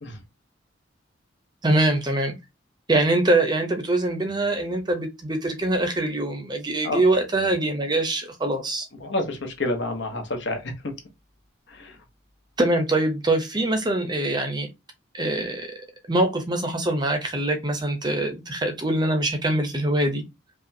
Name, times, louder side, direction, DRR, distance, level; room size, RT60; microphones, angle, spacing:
voice 1, 1.6-2.4 2.9-8.9 12.6-14.7 15.1-15.7 16.1-20.2, right 2 dB, 20° right, 0.6 m, -23 dB
voice 2, 9.0-10.7 11.8-11.9, left 2 dB, 65° left, 1.1 m, -28 dB
5.0 x 2.4 x 2.7 m
head